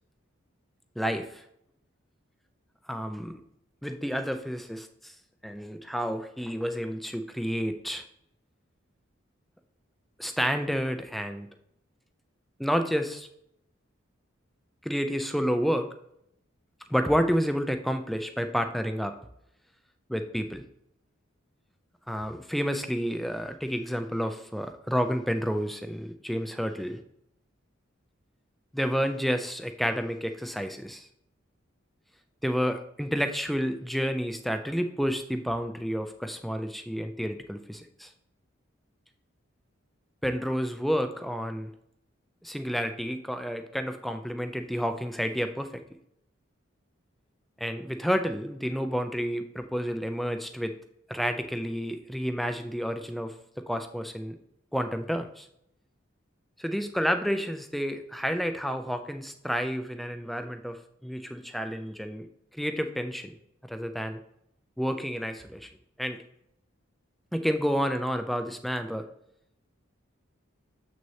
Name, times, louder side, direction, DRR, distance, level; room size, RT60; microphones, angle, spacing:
voice 1, 1.0-1.4 2.9-3.3 3.8-5.1 5.4-8.0 10.2-11.5 12.6-13.3 14.8-15.9 16.9-19.1 20.1-20.6 22.1-27.0 28.7-31.1 32.4-38.1 40.2-41.7 42.4-45.7 47.6-50.7 51.1-53.3 53.7-54.4 54.7-55.5 56.6-62.3 62.5-63.3 63.7-64.2 64.8-65.7 66.0-66.2 67.3-69.0, equal, ahead, 7 dB, 0.5 m, -30 dB
7.6 x 6.3 x 2.8 m, 0.75 s
head